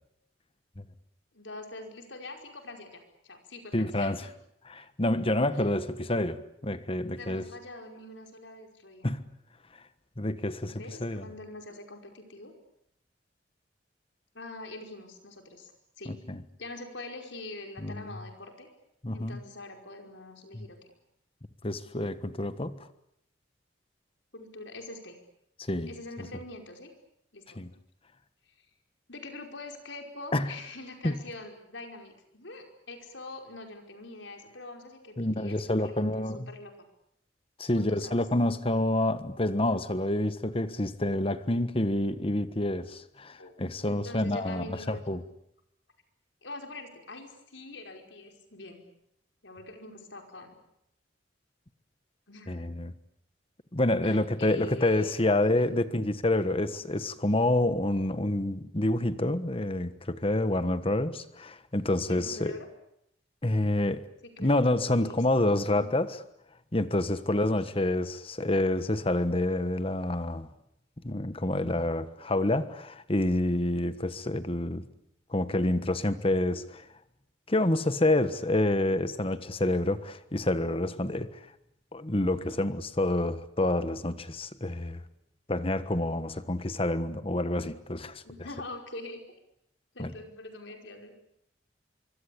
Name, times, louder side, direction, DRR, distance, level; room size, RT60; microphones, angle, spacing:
voice 1, 1.3-4.3 7.1-9.1 10.7-12.5 14.3-15.7 16.0-16.2 16.6-18.7 19.1-20.8 24.3-25.2 25.9-26.9 27.3-27.6 28.4-28.5 29.1-35.6 35.8-36.7 37.7-38.2 43.4-43.5 43.8-45.0 46.4-48.8 49.4-50.6 52.3-52.7 54.0-55.2 55.5-55.7 62.1-62.7 64.4-65.9 67.2-67.7 88.2-89.2 89.9-91.1, left 2 dB, 80° left, 5.2 m, -44 dB
voice 2, 3.7-4.3 4.6-7.5 9.0-9.2 10.2-11.2 16.1-16.4 17.8-18.1 19.0-19.4 20.5-20.7 21.6-22.9 25.6-25.9 26.2-26.3 27.5-27.7 30.3-30.5 31.0-31.2 35.2-36.5 37.6-45.2 52.5-52.9 53.7-62.6 63.4-64.0 64.4-66.2 66.7-70.5 71.0-74.8 75.3-76.9 77.5-81.5 81.9-85.0 85.5-88.2 90.0-90.1, left 1 dB, 30° left, 1.4 m, -28 dB
25.0 x 24.5 x 8.6 m
head